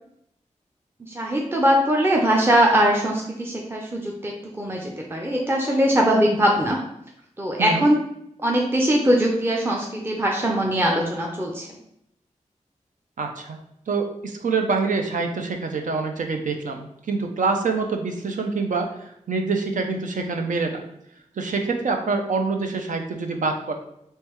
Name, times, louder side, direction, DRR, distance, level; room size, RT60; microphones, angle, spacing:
voice 1, 1.1-6.8 7.4-8.0 8.4-11.7, equal, 15° right, -1 dB, 0.6 m, -21 dB
voice 2, 13.2-13.6 13.9-18.9 19.3-20.8 21.4-23.7, right 4 dB, 80° right, 4 dB, 0.5 m, -25 dB
3.5 x 3.2 x 3.0 m, 0.76 s
cardioid pair, 50°, 13 cm